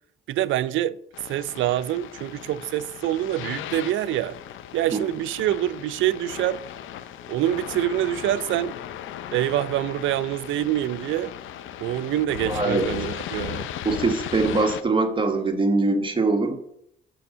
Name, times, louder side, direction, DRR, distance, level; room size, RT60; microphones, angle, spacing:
voice 1, 0.3-1.0 1.2-4.4 4.7-6.6 7.3-8.7 9.3-11.3 11.8-13.7, right 13 dB, 80° right, 0.4 m, -25 dB
sound 1, 1.1-14.8, left 10 dB, 80° left, 0.6 m, -36 dB
voice 2, 12.5-12.8 13.8-16.6, right 3 dB, 25° right, 1.5 m, -22 dB
7.0 x 6.2 x 5.5 m
cardioid pair, 90°, 20 cm